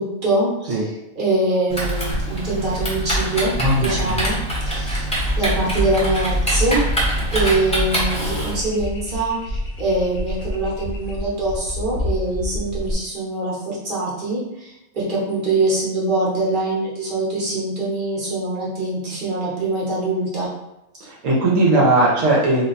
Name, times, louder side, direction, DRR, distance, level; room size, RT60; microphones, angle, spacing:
voice 1, 0.0-3.5 3.8-4.4 4.6-5.1 5.4-6.8 7.3-20.5, right 2 dB, 40° right, -6 dB, 1.1 m, -23 dB
Typing, 1.7-8.5, right 1 dB, 5° left, 0.6 m, -24 dB
sound 1, 2.1-12.9, left 1 dB, 55° left, 0.6 m, -30 dB
voice 2, 3.6-4.1 21.2-22.7, right 2 dB, 75° right, -4 dB, 1.1 m, -18 dB
2.6 x 2.2 x 3.9 m, 0.89 s
omnidirectional pair, 1.4 m